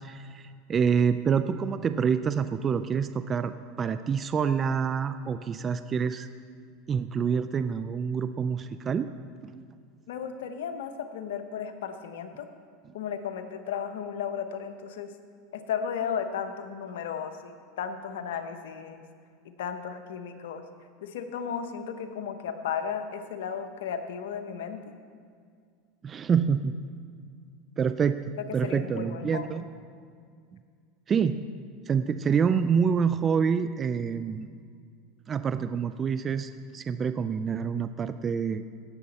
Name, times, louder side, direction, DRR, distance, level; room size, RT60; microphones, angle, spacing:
voice 1, 0.0-6.3 6.9-9.1 9.4-9.6 26.0-26.7 27.8-28.2 28.5-29.6 31.1-31.4 31.9-34.5 35.3-38.6, right 6 dB, 30° right, 11 dB, 0.4 m, -27 dB
voice 2, 10.1-12.5 12.9-15.1 15.5-19.0 19.4-20.7 21.0-24.8 28.6-29.6, left 7 dB, 80° left, 7 dB, 0.9 m, -34 dB
17.0 x 6.8 x 4.2 m, 2.1 s
hypercardioid pair, 105°, 0 cm